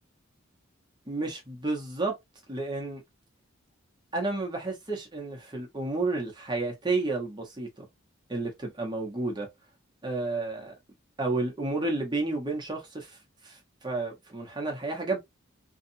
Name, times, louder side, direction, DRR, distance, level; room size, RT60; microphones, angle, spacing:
voice 1, 1.1-2.1 2.5-3.0 4.1-7.9 8.3-9.5 10.0-10.7 11.2-13.2 13.4-15.2, right 3 dB, 20° right, 0.8 m, -31 dB
2.7 x 2.4 x 2.6 m
head